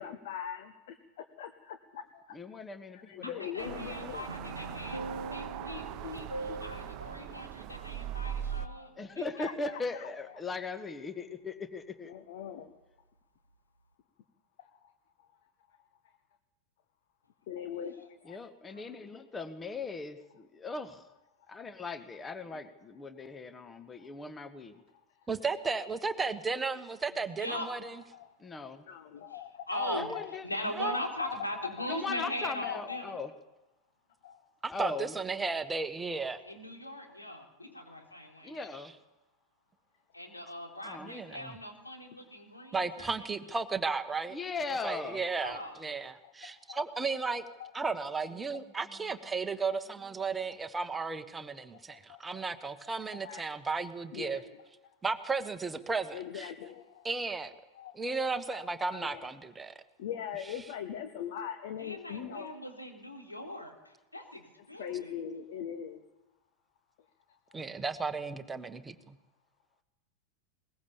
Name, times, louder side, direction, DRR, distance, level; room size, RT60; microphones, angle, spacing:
voice 1, 0.0-2.4 2.9-4.3 6.0-6.2 6.5-6.6 7.7-7.8 8.8-8.9 9.4-9.8 12.1-12.7 14.8-14.9 17.5-18.4 24.0-24.1 28.1-28.3 28.9-29.7 30.1-30.3 31.0-31.9 32.2-33.0 34.2-34.4 46.5-46.8 47.3-47.7 49.7-49.8 50.2-50.3 51.9-52.4 53.1-53.4 54.1-54.4 56.1-57.1 57.8-58.3 58.9-59.2 60.0-62.5 64.8-66.0, left 9 dB, 55° left, 8 dB, 1.4 m, -41 dB
voice 2, 2.3-3.5 9.0-12.1 18.2-21.1 21.5-24.7 28.4-28.9 29.9-30.5 31.9-33.3 34.7-35.1 38.4-38.9 40.8-41.1 44.3-45.2, left 3 dB, 15° left, 11 dB, 1.3 m, -39 dB
voice 3, 3.2-5.0 5.3-8.9 9.2-9.3 18.7-18.9 27.4-27.7 29.3-33.2 36.5-38.7 40.1-43.1 45.0-45.7 61.8-65.1, left 1 dB, 80° left, 2 dB, 3.6 m, -40 dB
sound 1, 3.6-8.7, right 11 dB, 40° right, 0.9 m, -40 dB
sound 2, 3.6-9.1 9.4-9.6, right 1 dB, 90° right, 0.8 m, -44 dB
voice 4, 25.3-28.0 29.7-30.1 30.8-31.0 34.6-36.4 41.0-41.6 42.7-44.4 44.8-47.4 47.7-54.4 55.0-56.5 57.0-57.5 57.9-59.8 67.5-69.2, right 4 dB, 10° right, 9 dB, 1.2 m, -34 dB
21.5 x 20.0 x 7.1 m, 1.0 s
figure-of-eight pair, 90°, 0 cm